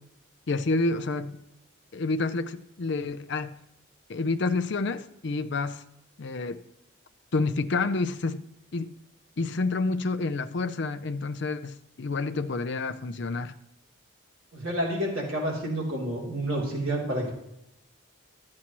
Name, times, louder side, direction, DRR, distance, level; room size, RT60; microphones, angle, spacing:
voice 1, 0.5-1.4 1.9-3.6 4.1-5.8 6.2-6.6 7.3-8.4 8.7-8.9 9.4-13.5, left 3 dB, 55° left, 0.5 m, -29 dB
voice 2, 14.5-17.3, right 1 dB, 75° right, 3.0 m, -29 dB
12.5 x 8.6 x 3.0 m
head